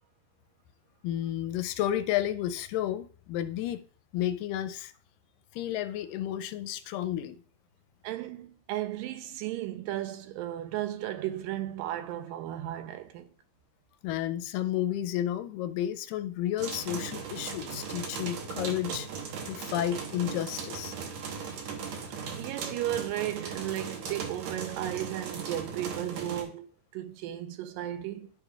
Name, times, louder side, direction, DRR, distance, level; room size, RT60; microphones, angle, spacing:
voice 1, 1.0-3.8 4.1-4.9 5.5-7.4 14.0-19.1 19.5-20.9, left 12 dB, 85° left, 2.2 m, -31 dB
voice 2, 8.0-13.3 22.1-28.3, right 13 dB, 85° right, 2.3 m, -35 dB
sound 1, 16.6-26.4, right 6 dB, 70° right, 2.0 m, -38 dB
12.5 x 4.9 x 2.3 m
omnidirectional pair, 3.9 m